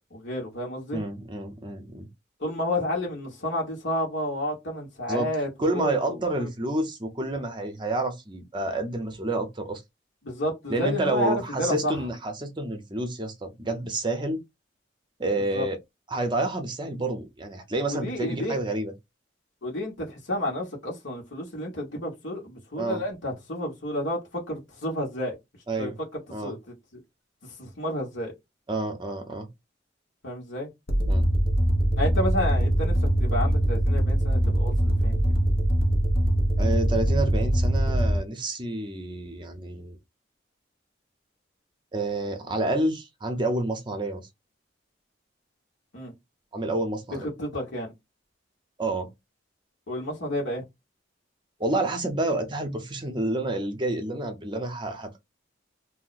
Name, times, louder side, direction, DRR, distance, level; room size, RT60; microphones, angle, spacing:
voice 1, 0.1-1.0 2.4-6.2 10.2-12.0 15.4-15.6 17.9-18.6 19.6-25.4 25.8-25.9 26.4-26.6 27.4-28.3 30.2-30.7 32.0-35.2 45.9-46.1 47.1-47.9 49.9-50.6, left 1 dB, 85° left, 1.3 m, -30 dB
voice 2, 0.9-2.1 5.1-5.3 5.6-9.8 10.7-14.4 15.2-15.8 16.1-18.9 22.8-23.0 25.7-26.0 26.3-26.5 28.7-29.5 31.1-31.3 36.6-40.0 41.9-44.3 46.5-47.3 48.8-49.1 51.6-55.2, right 2 dB, 25° right, 0.7 m, -29 dB
sound 1, 30.9-38.2, right 1 dB, 55° left, 0.8 m, -22 dB
2.7 x 2.1 x 4.0 m
head